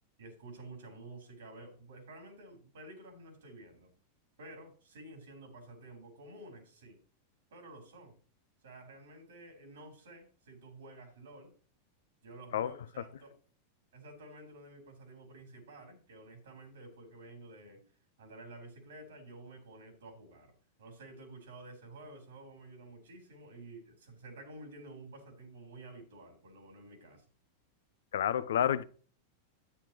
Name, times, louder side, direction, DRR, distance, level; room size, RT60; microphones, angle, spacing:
voice 1, 0.2-3.9 4.4-7.0 7.5-8.1 8.6-11.5 12.2-13.3 13.9-17.8 18.2-20.5 20.8-27.2, right 2 dB, 75° right, 3.9 m, -51 dB
voice 2, 28.1-28.8, left 10 dB, 70° left, 0.6 m, -29 dB
10.0 x 9.1 x 3.0 m
hypercardioid pair, 95°, 0 cm